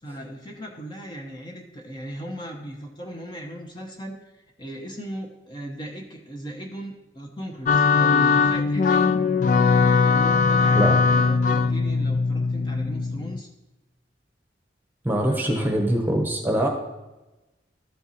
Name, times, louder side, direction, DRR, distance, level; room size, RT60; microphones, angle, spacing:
voice 1, 0.0-9.2 9.7-13.5 15.2-15.7, right 1 dB, 25° left, 1 dB, 0.9 m, -37 dB
sound 1, 7.7-13.4, left 4 dB, 45° left, 0.3 m, -20 dB
voice 2, 15.0-16.7, right 1 dB, 10° right, 2 dB, 1.0 m, -23 dB
13.0 x 4.5 x 4.1 m, 1.0 s
head